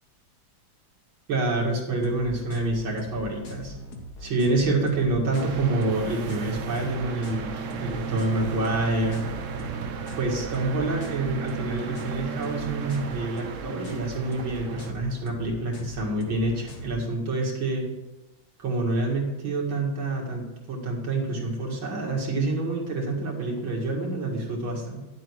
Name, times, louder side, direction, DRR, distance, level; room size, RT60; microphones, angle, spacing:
voice 1, 1.3-3.8 4.2-9.2 10.2-17.9 18.6-25.0, right 2 dB, 90° right, -1 dB, 2.8 m, -27 dB
sound 1, 2.0-17.0, left 1 dB, 55° left, 1.7 m, -41 dB
sound 2, 5.3-14.9, right 6 dB, 60° right, 0.8 m, -35 dB
10.5 x 7.8 x 4.7 m, 1.1 s
omnidirectional pair, 2.1 m